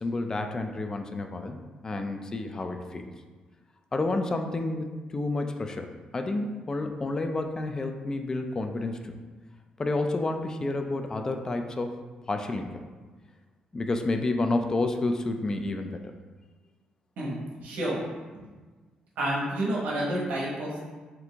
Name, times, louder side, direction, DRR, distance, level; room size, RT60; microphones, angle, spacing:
voice 1, 0.0-1.6 1.8-3.1 3.9-5.9 6.1-9.1 9.8-12.0 12.3-12.7 13.7-16.1, left 2 dB, 25° left, 5 dB, 0.3 m, -30 dB
voice 2, 17.2-18.0 18.3-18.4 19.2-20.9, right 1 dB, 85° right, -5 dB, 1.2 m, -30 dB
4.4 x 2.5 x 3.4 m, 1.3 s
cardioid pair, 130°, 3 cm